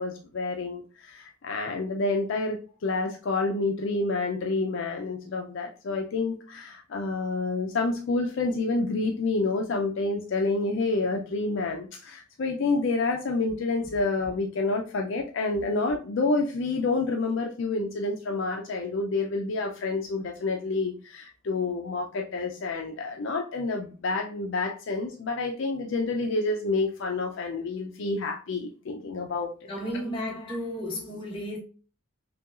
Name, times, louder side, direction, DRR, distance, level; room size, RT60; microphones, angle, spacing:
voice 1, 0.0-29.5, left 3 dB, 55° left, 0.4 m, -28 dB
voice 2, 29.7-31.6, equal, 25° left, 1.1 m, -33 dB
5.6 x 2.3 x 2.4 m
head